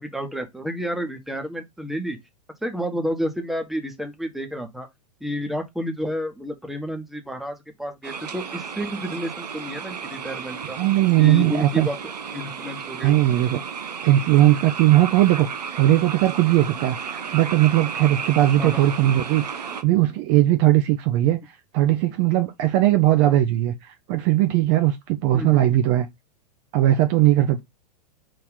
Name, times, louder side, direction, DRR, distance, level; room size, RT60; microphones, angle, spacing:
voice 1, 0.0-2.2 2.6-4.9 5.2-10.8 11.2-12.0 12.3-13.2 18.6-18.9 23.1-23.4 25.3-25.6, equal, ahead, 0.9 m, -30 dB
sound 1, 8.0-19.8, right 6 dB, 70° right, 0.8 m, -33 dB
voice 2, 10.8-11.9 13.0-13.6 14.0-15.5 15.8-21.4 21.7-23.7 24.1-26.1 26.7-27.6, right 14 dB, 35° right, 0.5 m, -19 dB
4.7 x 2.9 x 3.7 m
figure-of-eight pair, 100°, 21 cm